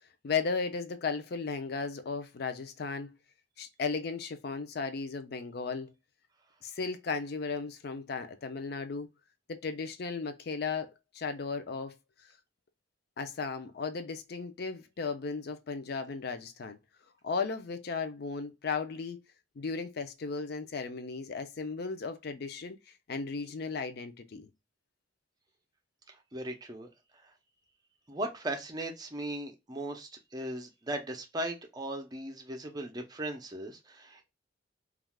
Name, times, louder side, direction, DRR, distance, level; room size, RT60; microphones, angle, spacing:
voice 1, 0.2-3.1 3.6-5.9 6.6-9.1 9.5-11.9 13.2-16.8 17.2-19.2 19.6-22.8 23.1-24.5, left 4 dB, 55° left, 0.4 m, -35 dB
voice 2, 26.1-26.9 27.2-27.3 28.1-34.3, right 1 dB, 20° right, 0.5 m, -38 dB
3.3 x 2.4 x 2.2 m
head